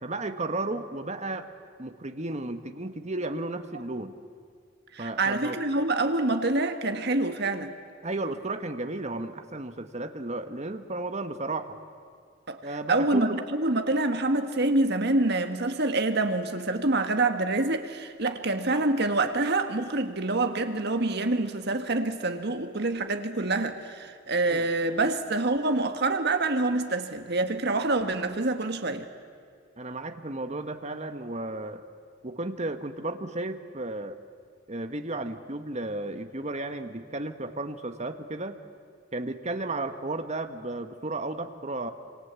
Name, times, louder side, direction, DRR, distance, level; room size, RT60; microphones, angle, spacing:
voice 1, 0.0-1.5 1.8-4.1 5.0-5.6 8.0-11.8 12.6-13.4 24.5-24.7 29.8-31.8 32.2-34.2 34.7-38.6 39.1-41.9, right 2 dB, 35° right, 8 dB, 1.4 m, -33 dB
voice 2, 4.9-7.7 12.5-12.6 12.9-29.1, right 2 dB, 55° right, 7 dB, 1.7 m, -26 dB
26.5 x 26.0 x 8.3 m, 2.1 s
head